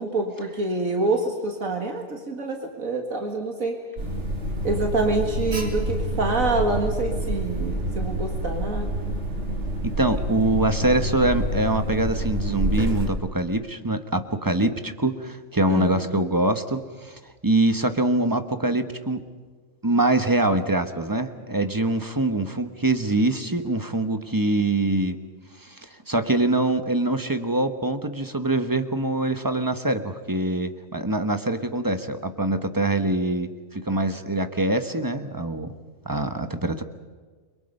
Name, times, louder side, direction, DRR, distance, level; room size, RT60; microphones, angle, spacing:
voice 1, 0.0-3.8 4.6-8.9 15.7-16.1, right 3 dB, 70° right, 2 dB, 2.3 m, -26 dB
Alarm, 4.0-13.1, equal, 55° right, 3.3 m, -28 dB
voice 2, 9.8-19.2 19.8-25.2 25.6-35.7 36.0-36.8, right 2 dB, 15° right, 8 dB, 1.1 m, -24 dB
30.0 x 23.0 x 5.5 m, 1.5 s
omnidirectional pair, 1.5 m